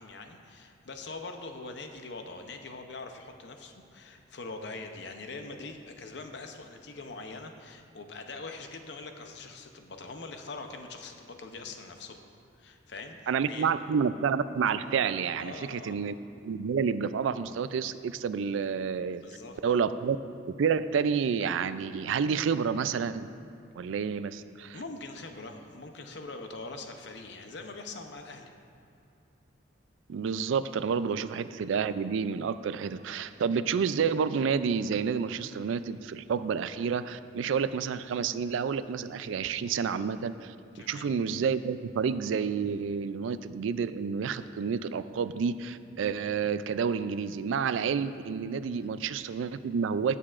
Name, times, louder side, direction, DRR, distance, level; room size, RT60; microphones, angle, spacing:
voice 1, 0.0-12.2 12.6-13.7 15.4-16.0 19.2-19.6 24.7-28.5 40.7-41.1, left 3 dB, 65° left, 5 dB, 0.7 m, -43 dB
voice 2, 13.3-16.2 16.4-19.2 19.6-20.2 20.6-23.3 23.8-24.8 30.1-40.5 40.9-50.1, right 6 dB, 85° right, 13 dB, 0.3 m, -29 dB
16.5 x 6.7 x 2.5 m, 2.5 s
head